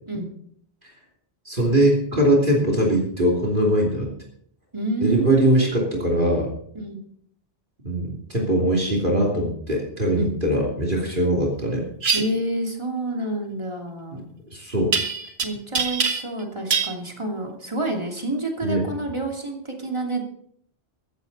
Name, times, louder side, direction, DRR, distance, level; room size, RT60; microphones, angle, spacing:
voice 1, 1.4-4.1 5.0-6.5 7.8-11.8 14.1-14.2 14.5-14.9 18.6-18.8, right 1 dB, 50° right, -1 dB, 3.2 m, -21 dB
voice 2, 4.7-5.7 6.7-7.0 10.2-10.4 12.1-14.2 15.4-20.2, right 2 dB, 25° right, 1 dB, 2.8 m, -28 dB
sound 1, 12.0-12.2 14.9-15.4 15.7-16.4 16.7-16.9, right 5 dB, 65° right, 1.7 m, -23 dB
15.5 x 14.5 x 4.1 m, 0.65 s
omnidirectional pair, 1.1 m